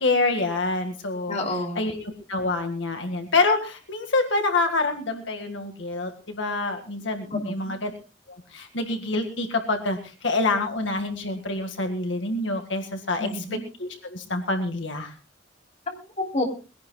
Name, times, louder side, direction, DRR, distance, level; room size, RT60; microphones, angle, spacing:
voice 1, 0.0-1.4 1.8-7.9 8.5-13.4 13.8-15.1, left 3 dB, 75° left, 5 dB, 1.9 m, -26 dB
voice 2, 1.3-1.9 7.3-7.7 13.2-13.6 15.9-16.4, left 2 dB, 40° left, 1 dB, 3.2 m, -29 dB
22.0 x 17.0 x 2.4 m, 0.33 s
head